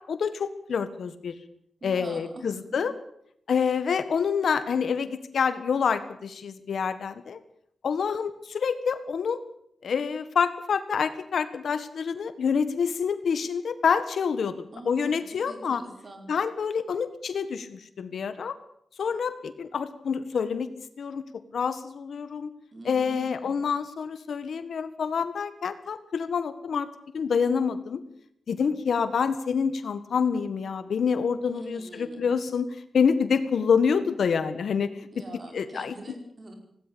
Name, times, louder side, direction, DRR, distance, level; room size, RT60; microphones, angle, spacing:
voice 1, 0.0-1.4 1.8-2.9 3.5-7.4 7.8-9.4 9.8-15.8 16.3-18.5 19.0-20.7 21.0-21.2 21.5-22.5 22.8-26.9 27.1-28.0 28.5-32.7 32.9-35.1 35.5-35.9, left 6 dB, 70° left, 12 dB, 1.7 m, -27 dB
voice 2, 1.8-2.8 14.7-16.3 22.7-23.6 31.5-32.2 35.1-36.6, right 1 dB, 35° right, 4 dB, 5.0 m, -43 dB
18.0 x 17.5 x 8.7 m, 0.70 s
wide cardioid pair, 170°, 0 cm